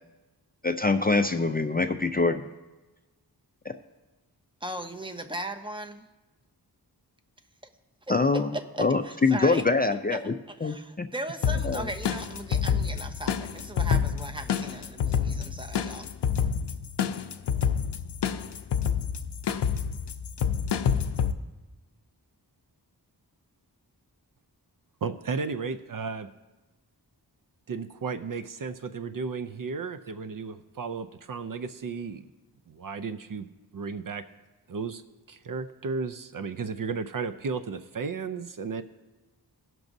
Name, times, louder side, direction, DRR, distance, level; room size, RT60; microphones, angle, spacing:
voice 1, 0.6-2.4 3.7-3.8 8.1-8.5 8.8-10.3 10.6-11.1 11.6-11.9, left 3 dB, 25° left, 7 dB, 0.4 m, -24 dB
voice 2, 4.6-6.1 8.3-9.6 10.1-10.2 10.5-16.1, right 1 dB, 10° right, 6 dB, 0.7 m, -37 dB
sound 1, 11.4-21.3, left 7 dB, 90° left, 0.6 m, -28 dB
voice 3, 25.0-26.3 27.7-32.3 32.7-33.5 33.7-34.2 34.7-35.0 35.3-38.8, right 5 dB, 55° right, 11 dB, 0.5 m, -34 dB
18.0 x 6.1 x 2.6 m, 1.1 s
wide cardioid pair, 65°, 40 cm